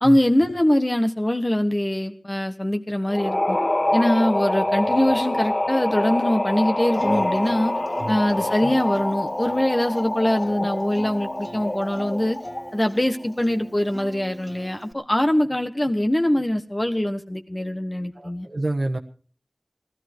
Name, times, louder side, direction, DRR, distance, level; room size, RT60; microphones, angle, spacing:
voice 1, 0.0-3.6 3.9-7.7 8.1-12.4 12.7-18.5, left 1 dB, 25° left, 7 dB, 1.2 m, -23 dB
sound 1, 3.1-12.8, left 1 dB, 45° left, 1.2 m, -25 dB
Acoustic guitar, 6.9-14.9, right 1 dB, 20° right, 2.6 m, -42 dB
voice 2, 18.1-19.0, right 2 dB, 65° right, 2 dB, 1.2 m, -28 dB
18.5 x 13.5 x 4.6 m, 0.43 s
wide cardioid pair, 45°, 0 cm